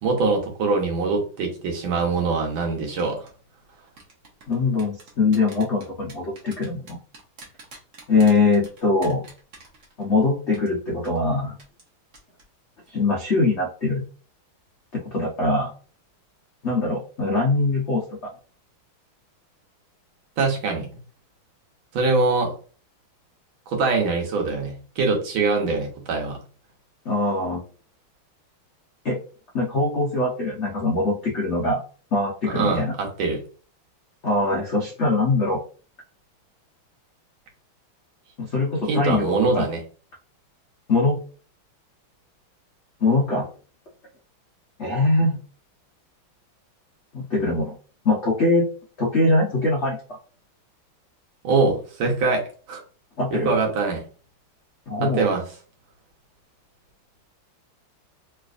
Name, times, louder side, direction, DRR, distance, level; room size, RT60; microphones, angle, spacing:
voice 1, 0.0-3.3 20.4-20.9 21.9-22.5 23.7-26.4 32.5-33.4 38.9-39.8 51.4-52.8 53.3-54.0 55.0-55.4, right 3 dB, 70° right, 1 dB, 1.6 m, -23 dB
sound 1, 3.0-3.3 4.0-10.2 10.5-10.7 11.0-11.2 11.6-11.9 12.1-12.4 12.7-12.9, right 3 dB, 50° right, 1.0 m, -45 dB
voice 2, 4.5-7.0 8.1-9.2 10.0-11.5 12.9-14.0 14.9-15.7 16.6-18.0 27.0-27.6 29.0-29.2 29.5-31.8 32.1-32.9 34.2-35.6 38.4-39.7 40.9-41.2 43.0-43.5 44.8-45.4 47.1-47.8 48.0-48.7 49.0-50.0 53.2-53.5 54.9-55.2, left 2 dB, 70° left, -3 dB, 0.6 m, -22 dB
3.3 x 3.2 x 2.4 m, 0.40 s
omnidirectional pair, 2.3 m